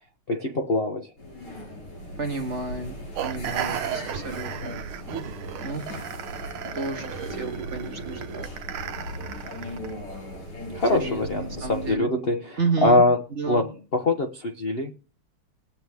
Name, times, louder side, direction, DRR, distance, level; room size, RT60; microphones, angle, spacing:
voice 1, 0.3-1.1 10.7-13.2 13.5-14.9, left 2 dB, 70° left, 0.5 m, -23 dB
sound 1, 1.2-11.9, equal, 90° left, 6.1 m, -38 dB
voice 2, 2.2-4.7 5.6-5.9 6.7-8.5 10.9-12.1 12.6-13.1 13.3-13.7, right 4 dB, 40° right, 1.2 m, -31 dB
sound 2, 3.1-9.9, right 10 dB, 75° right, 1.5 m, -35 dB
20.5 x 7.9 x 3.5 m
omnidirectional pair, 2.4 m